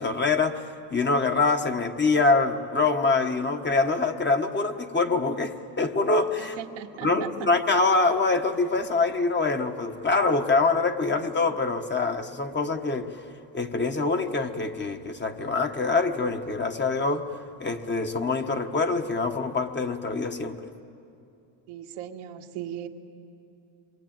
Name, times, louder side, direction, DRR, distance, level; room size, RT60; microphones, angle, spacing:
voice 1, 0.0-6.6 7.0-13.1 13.5-17.2 17.6-20.6, left 3 dB, 20° left, 6 dB, 1.3 m, -25 dB
voice 2, 6.4-7.5 21.7-22.9, right 11 dB, 80° right, 2 dB, 1.9 m, -38 dB
26.5 x 22.5 x 9.1 m, 2.7 s
cardioid pair, 105°, 49 cm